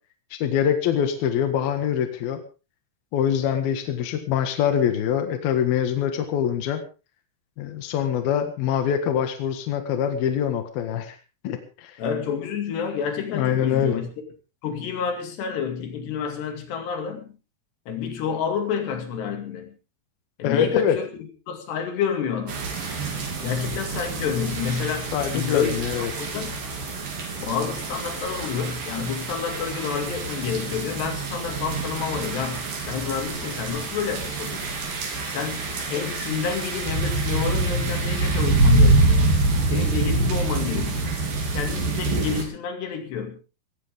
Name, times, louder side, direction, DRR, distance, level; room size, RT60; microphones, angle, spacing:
voice 1, 0.4-2.4 3.1-6.8 7.6-11.2 11.4-11.9 13.3-14.0 20.4-21.0 25.1-26.1, left 8 dB, 70° left, 7 dB, 3.4 m, -24 dB
voice 2, 12.0-14.1 14.6-17.3 17.9-19.8 20.4-22.6 23.4-26.6 27.4-34.7 35.3-39.2 39.6-41.1 41.5-43.4, left 7 dB, 90° left, 5 dB, 4.6 m, -29 dB
sound 1, 22.5-42.4, right 2 dB, 60° right, 4.9 m, -25 dB
19.0 x 16.0 x 3.6 m, 0.33 s
omnidirectional pair, 4.7 m